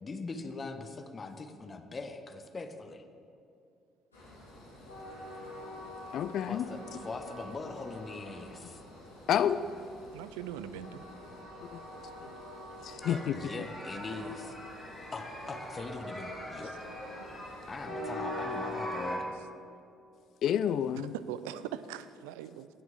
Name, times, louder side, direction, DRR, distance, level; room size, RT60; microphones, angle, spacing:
voice 1, 0.0-3.0 6.5-6.8 7.0-8.8 13.1-14.6 15.1-16.7 17.7-19.3, left 3 dB, 30° left, 0.8 m, -41 dB
Train, 4.1-19.1, left 1 dB, 85° left, 2.3 m, -44 dB
voice 2, 6.1-6.7 8.6-8.7 9.3-9.6 11.7-11.8 12.8-13.4 20.4-21.1, left 9 dB, 55° left, 0.3 m, -29 dB
voice 3, 10.1-11.0 21.3-22.7, right 10 dB, 70° right, 0.3 m, -41 dB
sound 1, 13.0-19.2, equal, ahead, 2.1 m, -44 dB
18.0 x 6.1 x 3.7 m
figure-of-eight pair, 50°, 0 cm